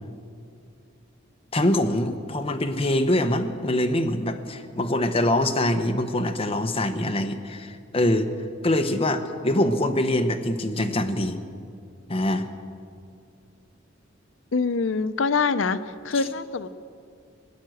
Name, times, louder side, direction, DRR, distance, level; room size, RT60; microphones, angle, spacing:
voice 1, 1.5-8.3 8.6-11.4 12.1-12.5, left 1 dB, 30° left, 6 dB, 1.0 m, -24 dB
voice 2, 14.5-15.8 16.0-16.7, left 4 dB, 70° left, 12 dB, 0.6 m, -24 dB
20.0 x 9.4 x 7.8 m, 2.3 s
head